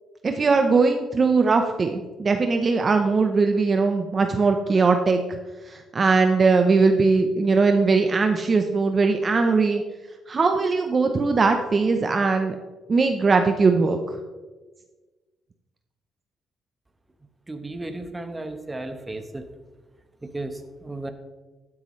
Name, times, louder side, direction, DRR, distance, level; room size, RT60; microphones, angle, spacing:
voice 1, 0.2-5.4 5.7-9.8 10.3-12.5 12.9-14.0, right 4 dB, 40° right, 5 dB, 0.8 m, -20 dB
voice 2, 17.5-19.4 20.2-21.1, right 2 dB, 15° right, 7 dB, 1.2 m, -34 dB
12.5 x 9.6 x 3.2 m, 1.3 s
cardioid pair, 90°, 0 cm